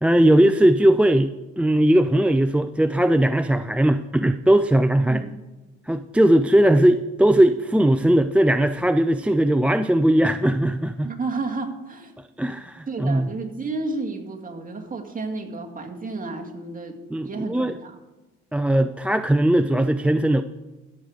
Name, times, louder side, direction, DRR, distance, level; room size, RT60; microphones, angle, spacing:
voice 1, 0.0-5.2 5.9-11.1 12.4-13.3 17.1-17.7 18.5-20.4, right 1 dB, 5° right, 10 dB, 0.4 m, -19 dB
voice 2, 5.0-5.3 11.0-12.1 12.9-17.0 17.2-17.9, right 3 dB, 25° right, 2 dB, 2.1 m, -31 dB
14.0 x 7.8 x 5.0 m, 1.2 s
supercardioid pair, 75°, 30 cm